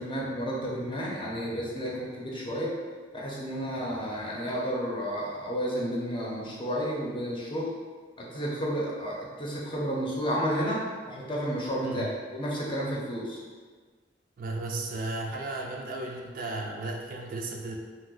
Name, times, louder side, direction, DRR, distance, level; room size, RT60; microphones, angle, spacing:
voice 1, 0.0-2.7 3.1-7.7 8.2-13.4, equal, 30° left, -4 dB, 0.6 m, -31 dB
voice 2, 14.4-17.8, right 2 dB, 50° right, 0 dB, 0.4 m, -34 dB
2.7 x 2.1 x 3.8 m, 1.5 s
head